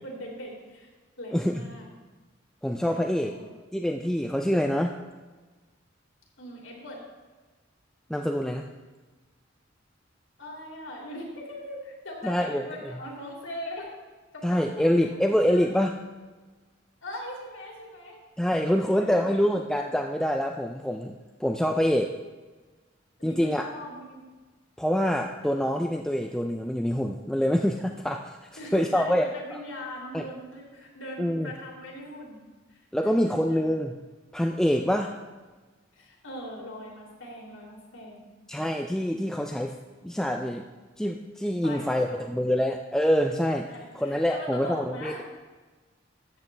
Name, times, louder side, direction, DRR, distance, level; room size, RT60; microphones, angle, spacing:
voice 1, 0.0-0.9 1.2-1.9 2.9-3.0 3.2-3.5 6.4-7.0 10.4-13.9 14.3-15.8 17.0-18.2 18.5-19.4 23.2-24.2 28.6-32.4 32.7-33.6 35.9-38.3 41.6-42.5 43.7-45.3, left 1 dB, 80° left, -2 dB, 2.8 m, -41 dB
voice 2, 1.3-1.6 2.6-3.3 3.7-5.0 8.1-8.7 12.2-12.7 14.4-15.9 18.4-21.1 21.4-22.1 23.2-23.7 24.8-28.4 28.7-29.3 30.1-30.2 31.2-31.5 32.9-34.0 34.3-35.1 38.5-39.7 40.0-40.7 41.0-43.7 43.9-45.1, equal, 5° left, 3 dB, 0.4 m, -25 dB
13.5 x 8.4 x 3.3 m, 1.3 s
head